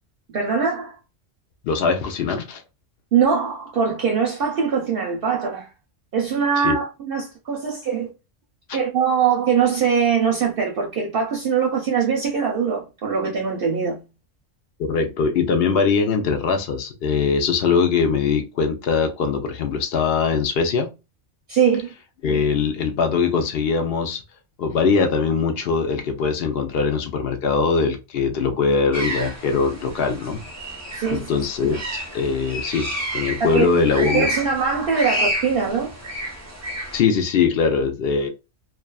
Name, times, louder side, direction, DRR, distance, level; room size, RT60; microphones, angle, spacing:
voice 1, 0.3-1.0 3.1-5.7 6.1-8.1 8.7-14.0 21.5-21.9 30.9-31.5 33.4-33.7 34.0-35.9, right 6 dB, 60° right, 0.6 m, -22 dB
voice 2, 1.6-2.6 6.6-6.8 14.8-20.9 22.2-24.2 24.6-30.4 31.1-31.8 32.1-32.9 33.1-34.3 36.9-38.3, left 5 dB, 65° left, 0.7 m, -21 dB
sound 1, 28.9-37.0, equal, 15° right, 0.7 m, -30 dB
2.3 x 2.3 x 2.2 m
omnidirectional pair, 1.2 m